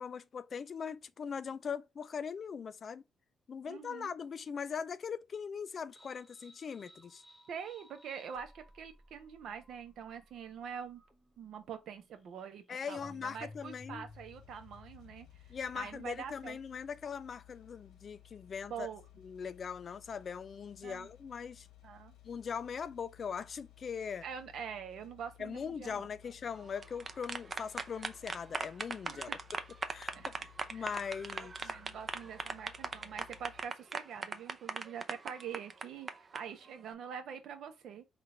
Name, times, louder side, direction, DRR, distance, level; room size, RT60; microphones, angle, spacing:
voice 1, 0.0-3.0 3.5-7.2 12.7-14.0 15.5-18.9 19.2-21.7 22.2-24.2 25.4-29.4 29.9-30.1 30.7-31.7, left 6 dB, 50° left, 0.4 m, -40 dB
voice 2, 3.6-4.1 7.5-11.0 11.4-16.6 18.7-19.0 20.8-21.1 21.8-22.1 24.2-26.1 29.1-29.4 30.1-30.5 30.7-30.9 31.3-38.0, right 7 dB, 70° right, 1.0 m, -45 dB
sound 1, 5.9-16.5, left 2 dB, ahead, 1.1 m, -58 dB
sound 2, 14.1-33.6, left 14 dB, 90° left, 1.2 m, -59 dB
sound 3, 26.6-36.4, right 4 dB, 35° right, 0.6 m, -39 dB
3.8 x 2.5 x 4.3 m
cardioid pair, 90°, 0 cm